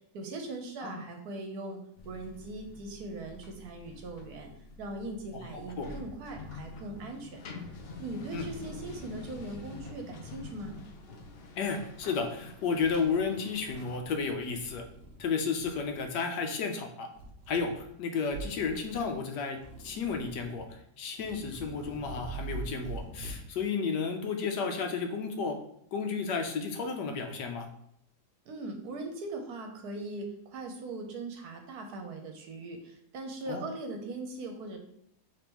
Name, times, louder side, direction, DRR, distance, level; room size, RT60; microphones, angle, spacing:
voice 1, 0.1-4.5 4.8-7.4 8.0-10.8 28.5-34.8, right 2 dB, 70° right, 4 dB, 1.2 m, -40 dB
sound 1, 2.0-14.0, left 3 dB, 70° left, 0.5 m, -47 dB
voice 2, 5.3-5.9 8.3-8.5 11.6-14.8 15.2-17.1 17.5-20.7 21.0-25.6 25.9-27.7 33.5-33.6, left 5 dB, 85° left, 5 dB, 1.3 m, -32 dB
sound 2, 10.4-11.4 11.8-12.3 12.7-13.3 13.6-15.2 15.5-16.1 17.1-17.9 18.2-19.2 19.5-20.7 21.1-23.5, right 3 dB, 50° right, 0.6 m, -45 dB
5.2 x 3.3 x 3.0 m, 0.73 s
omnidirectional pair, 1.8 m